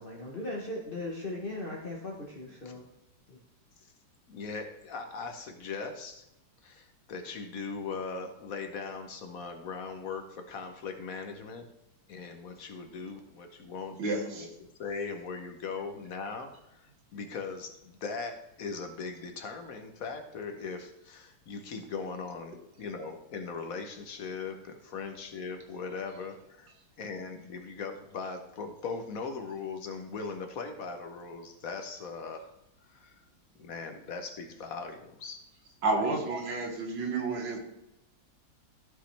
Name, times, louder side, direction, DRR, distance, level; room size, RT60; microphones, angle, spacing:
voice 1, 0.0-2.9 3.3-3.4, left 2 dB, 35° left, -3 dB, 1.1 m, -38 dB
voice 2, 4.3-6.2 6.6-11.6 12.1-14.5 14.8-16.8 17.1-26.7 27.0-32.5 32.9-33.1 33.6-35.4 36.3-36.4, left 4 dB, 55° left, 6 dB, 1.2 m, -39 dB
voice 3, 14.0-14.5 35.8-37.6, right 3 dB, 70° right, 2 dB, 2.0 m, -30 dB
14.5 x 5.7 x 3.3 m, 0.89 s
omnidirectional pair, 2.0 m